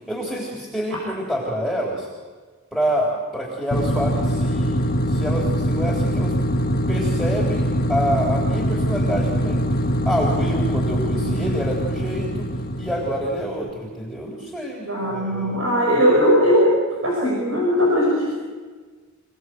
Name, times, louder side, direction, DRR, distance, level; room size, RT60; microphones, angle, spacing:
voice 1, 0.1-2.1 2.7-6.3 6.9-9.6 10.1-12.5 12.8-15.6, equal, ahead, -4 dB, 3.5 m, -27 dB
sound 1, 3.7-13.5, equal, 45° left, 1.4 m, -23 dB
voice 2, 11.1-11.5 14.8-18.3, equal, 85° right, -2 dB, 5.9 m, -19 dB
26.5 x 18.5 x 7.8 m, 1.4 s
head